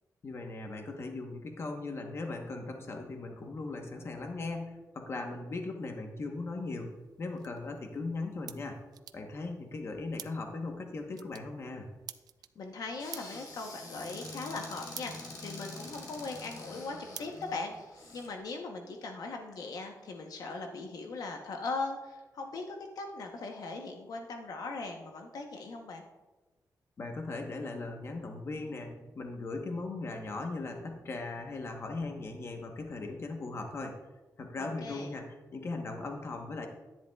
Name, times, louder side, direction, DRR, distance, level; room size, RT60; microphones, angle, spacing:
voice 1, 0.2-8.8 9.1-11.9 27.0-34.0 34.4-36.7, left 3 dB, 40° left, 3 dB, 1.0 m, -38 dB
sound 1, 6.7-18.2, right 9 dB, 75° right, 0.4 m, -52 dB
voice 2, 12.6-15.1 15.4-17.7 18.1-26.0 34.6-35.1, left 3 dB, 70° left, 3 dB, 0.9 m, -39 dB
Squeak / Cupboard open or close, 13.0-18.3, left 2 dB, 85° left, 2.7 m, -46 dB
10.5 x 10.5 x 2.3 m, 1.1 s
wide cardioid pair, 165°, 7 cm